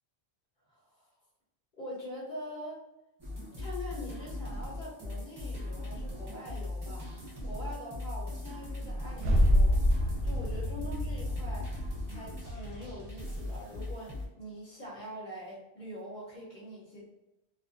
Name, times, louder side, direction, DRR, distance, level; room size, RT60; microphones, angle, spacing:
voice 1, 0.7-1.1 1.8-2.8 3.6-9.8 10.2-11.7 12.1-17.1, equal, 50° left, -6 dB, 0.9 m, -44 dB
sound 1, 3.2-14.3, left 2 dB, 25° right, 0.6 m, -39 dB
sound 2, 9.1-13.4, equal, 70° right, 0.8 m, -28 dB
2.4 x 2.1 x 2.5 m, 0.97 s
omnidirectional pair, 1.1 m